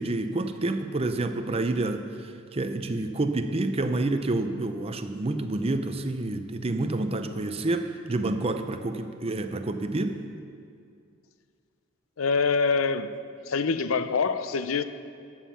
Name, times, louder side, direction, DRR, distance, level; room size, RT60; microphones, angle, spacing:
voice 1, 0.0-10.2, right 2 dB, 30° right, 8 dB, 0.6 m, -28 dB
voice 2, 12.2-13.1 13.5-14.8, left 4 dB, 80° left, 12 dB, 0.5 m, -25 dB
13.5 x 7.3 x 5.7 m, 2.3 s
head